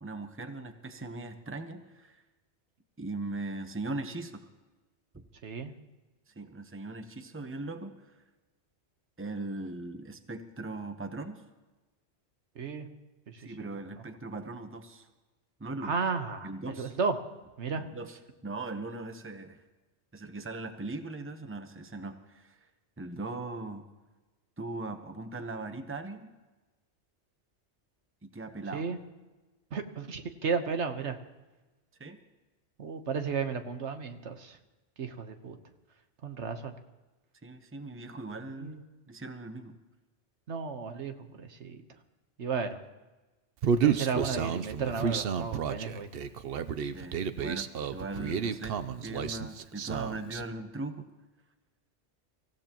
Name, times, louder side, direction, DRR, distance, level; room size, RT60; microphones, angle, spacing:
voice 1, 0.0-2.2 3.0-4.5 5.1-5.2 6.3-8.1 9.2-11.4 13.4-15.1 15.6-16.0 16.4-17.0 17.9-18.2 18.4-19.6 20.1-22.7 23.0-23.8 24.6-26.3 28.2-28.9 32.0-32.2 37.4-38.7 39.1-39.8 46.9-51.1, right 2 dB, 10° right, 8 dB, 0.9 m, -39 dB
voice 2, 5.4-5.7 12.5-12.9 13.3-14.0 15.8-17.2 17.6-17.8 28.7-29.0 29.7-31.2 32.8-34.6 35.0-35.6 36.2-36.7 38.6-38.8 40.5-41.8 42.4-42.8 43.8-46.2, right 5 dB, 80° right, 7 dB, 1.4 m, -34 dB
Human voice, 43.6-50.4, right 7 dB, 60° right, 0.9 m, -31 dB
25.0 x 15.5 x 3.0 m, 1.2 s
omnidirectional pair, 1.2 m